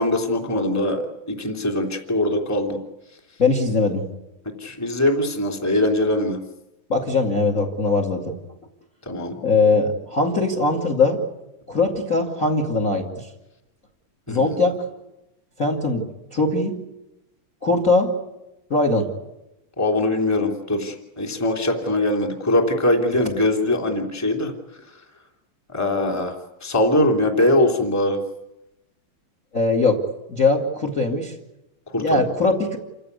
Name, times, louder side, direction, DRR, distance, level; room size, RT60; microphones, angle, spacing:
voice 1, 0.0-2.8 4.6-6.4 9.1-9.3 14.3-14.6 19.8-24.5 25.7-26.3 26.6-28.2 31.9-32.2, left 1 dB, 5° left, 2 dB, 2.4 m, -22 dB
voice 2, 3.4-4.1 6.9-8.4 9.4-11.2 11.7-13.0 14.3-14.8 15.6-16.0 16.3-16.8 17.6-18.1 18.7-19.1 29.5-30.0 30.3-31.3 32.0-32.8, left 3 dB, 25° left, 3 dB, 2.2 m, -20 dB
28.5 x 15.5 x 9.6 m, 0.93 s
omnidirectional pair, 4.5 m